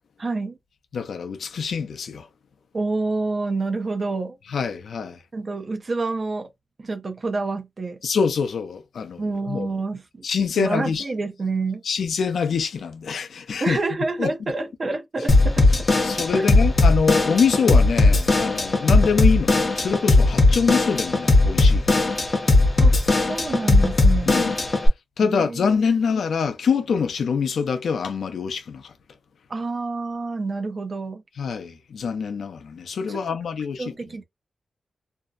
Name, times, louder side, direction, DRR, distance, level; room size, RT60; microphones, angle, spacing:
voice 1, 0.2-0.6 2.7-4.4 5.3-6.5 6.8-8.0 9.2-10.2 10.6-11.8 13.6-15.7 16.2-16.5 22.8-24.5 25.2-25.6 25.9-26.0 29.5-31.2 33.1-33.2 33.8-34.2, right 3 dB, 35° right, 0.5 m, -28 dB
voice 2, 0.9-2.3 4.5-5.2 8.0-9.7 10.2-11.0 11.8-13.8 14.2-14.5 16.0-22.2 24.2-24.5 25.2-28.9 31.4-33.9, left 6 dB, 80° left, 0.5 m, -25 dB
Drum kit / Drum, 15.3-24.9, left 2 dB, 30° left, 0.7 m, -18 dB
2.6 x 2.0 x 2.3 m
wide cardioid pair, 170°, 0 cm